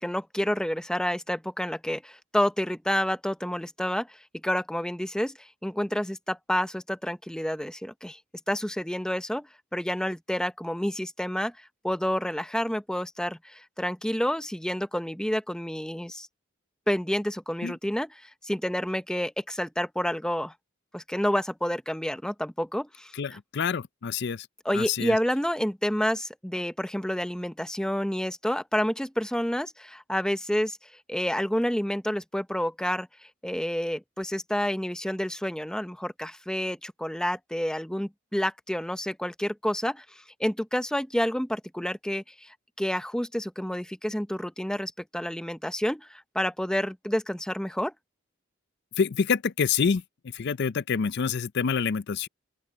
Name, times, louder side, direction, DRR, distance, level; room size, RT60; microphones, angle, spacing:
voice 1, 0.0-4.1 4.4-8.2 8.5-9.5 9.7-11.5 11.8-16.3 16.9-18.1 18.4-20.5 20.9-23.1 24.6-30.8 31.1-33.1 33.4-40.0 40.4-42.5 42.8-47.9, equal, 5° left, 0.9 m, -29 dB
voice 2, 23.1-24.5 24.7-25.2 49.0-52.3, left 6 dB, 60° left, 0.5 m, -27 dB
open air
head